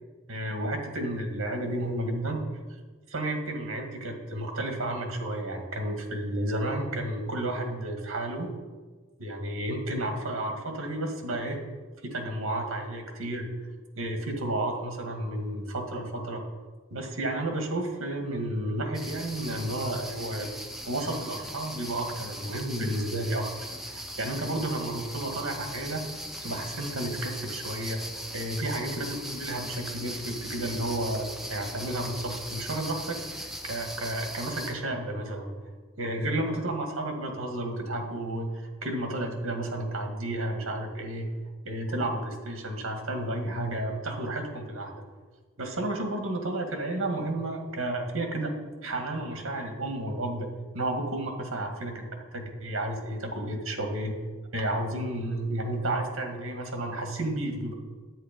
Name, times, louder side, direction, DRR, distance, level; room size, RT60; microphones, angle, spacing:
voice 1, 0.3-2.4 3.1-8.5 9.2-11.6 12.0-13.5 14.0-16.4 16.9-20.5 20.9-23.5 23.9-28.0 28.3-35.5 36.0-41.3 41.6-45.0 45.6-48.5 48.8-50.5 50.7-52.0 52.3-54.1 54.5-57.7, right 1 dB, 80° right, 4 dB, 2.0 m, -32 dB
sound 1, 18.9-34.7, equal, ahead, 0.8 m, -39 dB
10.5 x 8.5 x 5.3 m, 1.4 s
head